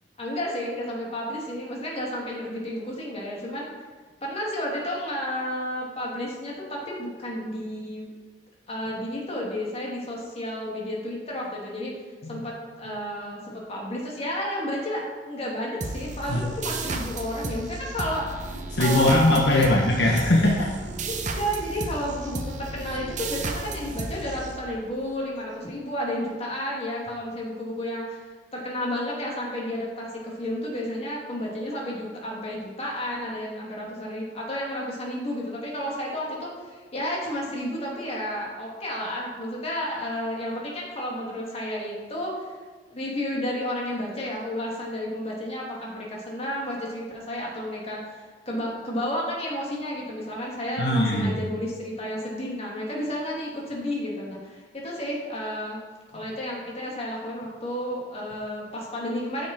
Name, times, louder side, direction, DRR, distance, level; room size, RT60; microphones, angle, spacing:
voice 1, 0.2-3.7 4.2-8.1 8.7-11.9 12.3-19.7 21.1-28.2 28.5-42.5 42.9-55.8 56.1-59.5, equal, 35° left, -3 dB, 2.6 m, -32 dB
sound 1, 15.8-25.0, right 3 dB, 45° right, 0.8 m, -33 dB
voice 2, 18.7-20.9 50.8-51.4, left 1 dB, 70° left, -1 dB, 1.2 m, -21 dB
9.5 x 7.2 x 4.4 m, 1.4 s
head